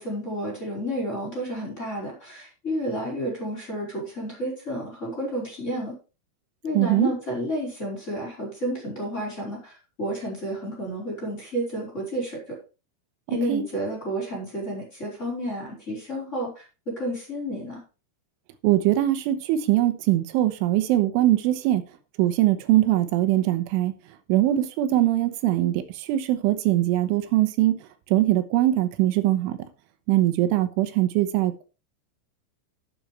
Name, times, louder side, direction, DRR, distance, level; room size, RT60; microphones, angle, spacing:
voice 1, 0.0-5.9 6.6-12.4 13.3-17.8, equal, 15° left, 5.0 m, -31 dB
voice 2, 6.8-7.1 13.3-13.6 18.6-21.8 22.2-23.9 24.3-27.8 28.1-29.6 30.1-31.7, right 14 dB, 90° right, 3.4 m, -22 dB
12.0 x 8.8 x 3.3 m
omnidirectional pair, 5.5 m